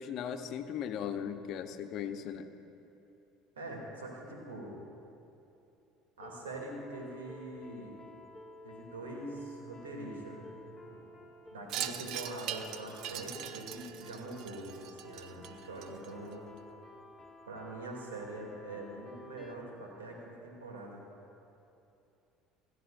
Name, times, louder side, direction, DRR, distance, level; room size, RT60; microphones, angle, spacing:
voice 1, 0.0-2.5, left 8 dB, 60° left, 7 dB, 0.9 m, -38 dB
voice 2, 3.6-4.8 6.2-8.0 8.6-10.6 10.8-11.1 11.5-16.5 17.5-21.1, right 2 dB, 90° right, -1 dB, 2.7 m, -44 dB
sound 1, 6.2-19.6, left 1 dB, 5° left, 2.1 m, -53 dB
Wind chime, 11.7-16.3, right 10 dB, 60° right, 0.7 m, -41 dB
27.5 x 12.0 x 2.6 m, 2.8 s
hypercardioid pair, 70°, 0 cm